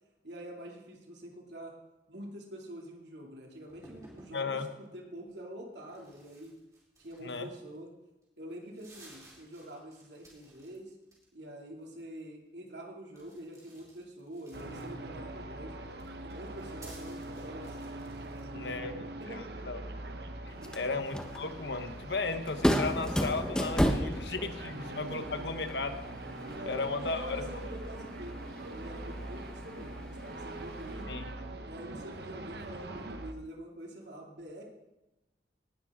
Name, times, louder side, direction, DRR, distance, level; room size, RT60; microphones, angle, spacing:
voice 1, 0.2-1.7 2.1-6.6 7.0-7.9 8.4-10.9 11.3-15.7 16.2-17.8 18.2-19.7 20.6-20.9 25.1-25.5 26.3-31.3 31.7-34.6, right 1 dB, 85° right, 0 dB, 2.7 m, -46 dB
sound 1, 3.7-4.4 5.8-7.8 8.2-8.3 8.6-10.8 11.0-11.5 13.1-15.2 15.9-18.5, right 1 dB, 20° right, 4.3 m, -56 dB
voice 2, 4.3-4.7 7.2-7.5 18.5-19.1 19.7-19.8 20.7-26.0 26.7-27.4 31.1-31.2, left 3 dB, 85° left, 8 dB, 1.2 m, -35 dB
sound 2, 14.5-33.3, right 2 dB, 70° right, 1.0 m, -43 dB
sound 3, 20.5-31.0, equal, 5° left, 1.0 m, -35 dB
18.5 x 12.5 x 3.7 m, 1.0 s
head